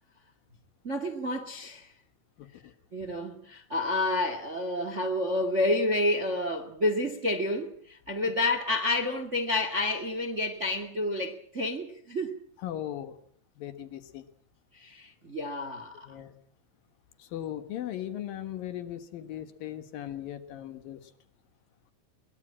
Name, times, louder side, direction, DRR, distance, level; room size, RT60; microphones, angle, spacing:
voice 1, 0.8-1.9 2.9-12.3 14.8-16.1, left 1 dB, 25° right, 1.6 m, -29 dB
voice 2, 2.4-2.7 12.6-13.2 13.6-14.3 16.1-16.3 17.2-21.0, left 11 dB, 65° left, 3.0 m, -38 dB
22.5 x 20.5 x 8.7 m
omnidirectional pair, 4.5 m